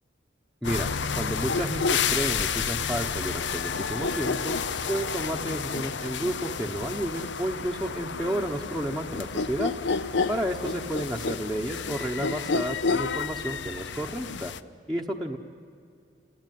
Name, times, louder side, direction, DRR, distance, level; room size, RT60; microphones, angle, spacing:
sound 1, 0.6-14.6, left 5 dB, 65° left, 0.7 m, -30 dB
voice 1, 1.2-4.5 4.9-9.7 10.3-14.5 14.9-15.4, right 1 dB, ahead, 1 dB, 1.0 m, -31 dB
28.5 x 20.0 x 9.3 m, 2.4 s
head